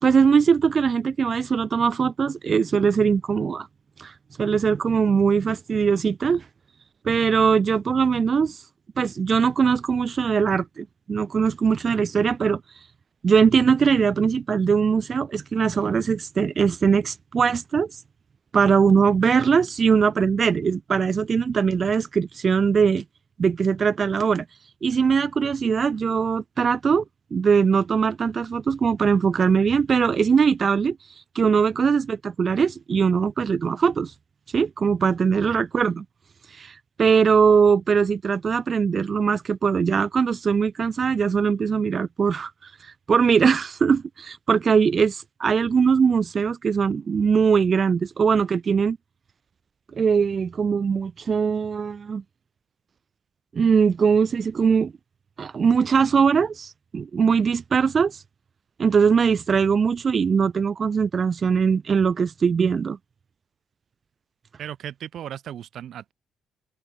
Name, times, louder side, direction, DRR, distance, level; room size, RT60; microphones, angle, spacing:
voice 1, 0.0-3.7 4.0-4.1 4.4-6.4 7.0-8.6 9.0-12.6 13.2-17.9 18.5-23.0 23.4-24.4 24.8-27.0 27.3-31.0 31.3-34.1 34.5-36.0 36.5-49.0 49.9-52.2 53.5-54.9 55.4-58.2 58.8-63.0, right 6 dB, 45° right, 1.6 m, -21 dB
voice 2, 64.6-66.1, right 10 dB, 70° right, 1.7 m, -36 dB
cardioid pair, 90°, 0 cm